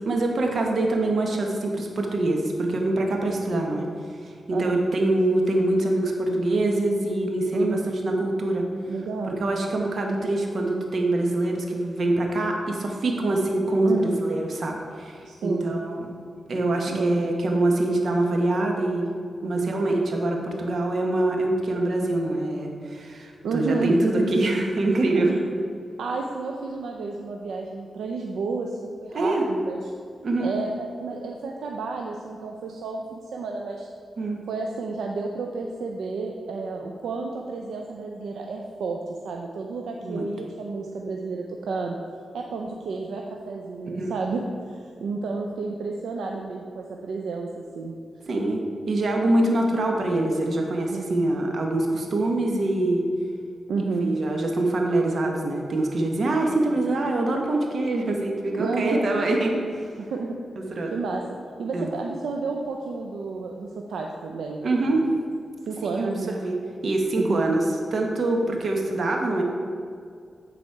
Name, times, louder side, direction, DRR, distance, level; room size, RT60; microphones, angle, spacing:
voice 1, 0.0-3.9 4.2-8.7 9.3-16.1 16.5-19.1 19.4-25.3 29.1-29.4 30.2-30.5 34.2-34.4 40.0-40.2 44.0-44.1 48.3-53.1 54.0-59.6 60.7-60.9 61.7-61.9 64.6-65.1 65.8-66.6 66.8-69.4, right 2 dB, 65° right, 1 dB, 1.1 m, -24 dB
voice 2, 4.5-4.8 7.5-7.9 8.9-9.4 13.8-14.2 15.2-15.8 16.9-17.3 19.4-19.8 23.4-24.0 25.1-25.4 26.0-29.8 30.4-33.9 34.5-42.0 42.3-44.4 44.7-47.9 50.9-51.3 53.7-54.1 58.6-59.1 60.0-60.4 60.9-61.2 61.6-64.7 65.7-66.3 67.2-67.6, right 4 dB, 85° right, 1 dB, 0.5 m, -31 dB
9.2 x 4.1 x 4.7 m, 2.2 s
cardioid pair, 55°, 0 cm